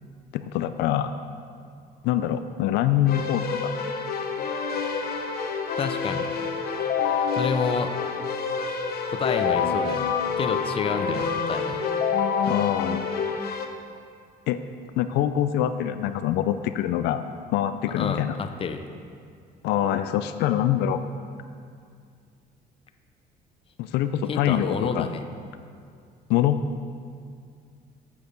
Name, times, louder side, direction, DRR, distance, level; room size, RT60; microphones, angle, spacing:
voice 1, 0.3-1.1 2.0-3.4 12.5-13.0 14.5-14.6 15.0-17.2 17.5-18.3 19.6-21.0 23.8-25.1 26.3-26.6, left 11 dB, 85° left, 10 dB, 0.4 m, -24 dB
Keyboard (musical), 3.0-13.7, left 5 dB, 65° left, 0.8 m, -27 dB
voice 2, 5.8-6.3 7.3-7.9 9.1-11.8 17.9-18.8 24.3-25.2, left 5 dB, 35° left, 8 dB, 0.6 m, -29 dB
8.2 x 6.5 x 5.2 m, 2.2 s
cardioid pair, 110°, 17 cm